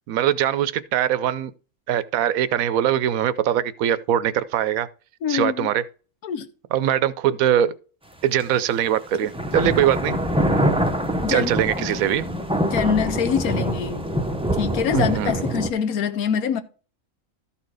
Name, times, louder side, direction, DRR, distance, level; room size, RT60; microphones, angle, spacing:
voice 1, 0.1-1.5 1.9-4.9 5.3-5.8 6.7-7.7 8.2-10.2 11.3-12.2 14.9-15.4, right 10 dB, 75° right, 1.0 m, -22 dB
voice 2, 5.2-5.7 6.2-6.5 11.2-11.5 11.8-11.9 12.6-14.1 14.6-16.6, left 7 dB, 85° left, 1.3 m, -24 dB
sound 1, 8.4-8.5 9.2-15.7, equal, 5° right, 0.5 m, -24 dB
13.0 x 4.3 x 4.7 m
omnidirectional pair, 1.5 m